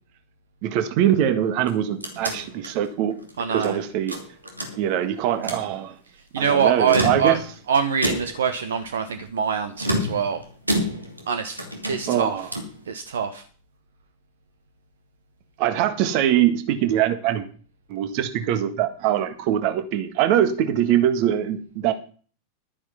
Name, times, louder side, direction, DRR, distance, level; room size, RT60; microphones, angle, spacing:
voice 1, 0.6-3.2 3.5-4.2 4.8-5.9 6.4-7.3 12.1-12.5 15.6-17.5 17.9-21.9, right 10 dB, 45° right, 10 dB, 1.6 m, -22 dB
sound 1, 1.6-3.7 4.1-5.1 5.3-5.7 6.7-7.6 8.0-8.5 9.8-11.3 11.6-12.8, equal, 85° right, 2.7 m, -29 dB
voice 2, 3.4-3.8 6.3-7.4 7.7-10.4 11.3-12.5 12.9-13.4, right 7 dB, 65° right, 9 dB, 1.1 m, -24 dB
12.0 x 9.8 x 5.6 m, 0.41 s
figure-of-eight pair, 90°, 0 cm